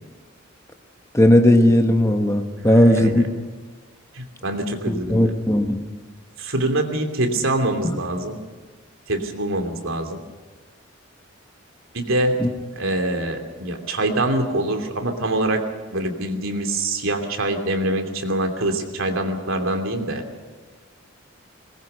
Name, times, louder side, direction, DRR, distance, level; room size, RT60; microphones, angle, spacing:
voice 1, 1.1-3.2 4.9-5.8 7.8-8.0 12.4-12.5, left 1 dB, 15° left, 6 dB, 1.2 m, -17 dB
voice 2, 2.6-3.2 4.1-5.4 6.4-8.4 9.1-10.2 11.9-12.4 12.8-15.6 15.9-20.2, right 1 dB, 70° right, 4 dB, 2.8 m, -24 dB
22.0 x 20.0 x 6.8 m, 1.4 s
head